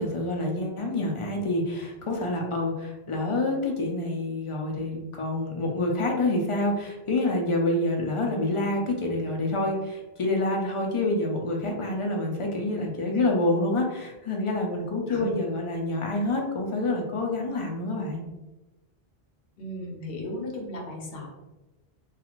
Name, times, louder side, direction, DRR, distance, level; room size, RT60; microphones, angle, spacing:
voice 1, 0.0-18.2, left 2 dB, 50° left, 0 dB, 0.4 m, -27 dB
voice 2, 19.6-21.3, equal, 75° left, 0 dB, 0.9 m, -35 dB
2.4 x 2.4 x 2.9 m, 1.0 s
omnidirectional pair, 1.0 m